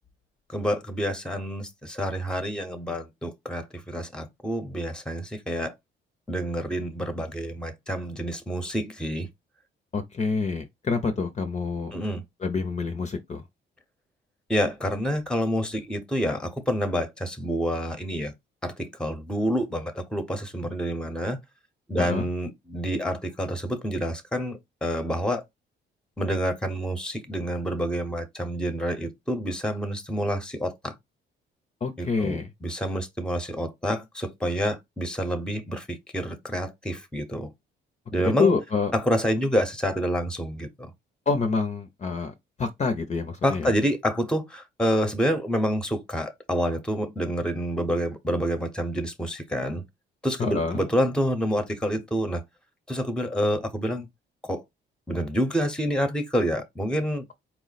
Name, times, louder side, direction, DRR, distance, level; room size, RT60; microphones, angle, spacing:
voice 1, 0.5-5.7 6.3-9.3 11.9-12.2 14.5-18.3 18.6-21.4 21.9-25.4 26.2-30.9 32.0-37.5 38.1-38.5 38.9-40.9 43.4-49.8 50.2-52.4 52.9-54.1 54.4-54.6 55.1-57.3, equal, 5° left, 0.9 m, -28 dB
voice 2, 9.9-11.9 12.4-13.4 22.0-22.3 31.8-32.5 38.2-38.9 41.3-43.7 50.4-50.8, left 4 dB, 35° left, 0.7 m, -27 dB
4.4 x 2.1 x 4.1 m
cardioid pair, 90°, 20 cm